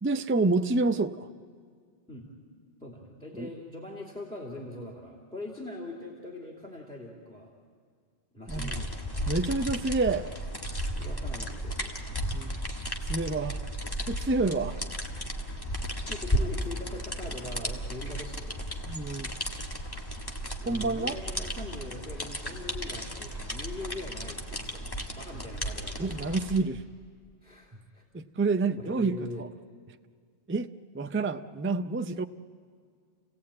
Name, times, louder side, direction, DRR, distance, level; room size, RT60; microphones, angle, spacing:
voice 1, 0.0-1.3 3.4-3.5 8.5-8.7 9.3-10.3 12.3-12.7 13.1-13.6 14.1-14.8 18.9-19.3 20.7-21.2 26.0-26.8 28.1-29.5 30.5-32.2, right 3 dB, 20° right, 9 dB, 0.4 m, -28 dB
voice 2, 2.8-7.5 8.3-9.3 11.0-11.9 15.7-18.8 20.6-26.3 27.4-28.0 28.8-29.5, left 2 dB, 5° left, -1 dB, 2.6 m, -42 dB
sound 1, 8.5-26.6, equal, 20° left, 1.4 m, -34 dB
29.0 x 17.0 x 8.6 m, 2.1 s
omnidirectional pair, 1.1 m